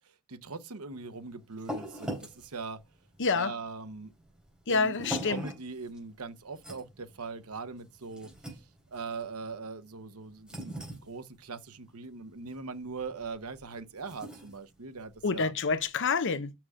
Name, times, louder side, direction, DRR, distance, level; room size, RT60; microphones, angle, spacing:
voice 1, 0.3-2.8 3.3-4.1 4.7-8.3 8.9-10.8 11.0-15.5, right 4 dB, 85° right, 1.0 m, -41 dB
sound 1, 0.9-15.9, equal, 5° right, 3.9 m, -44 dB
voice 2, 3.2-3.6 4.7-5.4 15.2-16.5, left 4 dB, 60° left, 0.8 m, -28 dB
6.5 x 6.0 x 4.9 m
head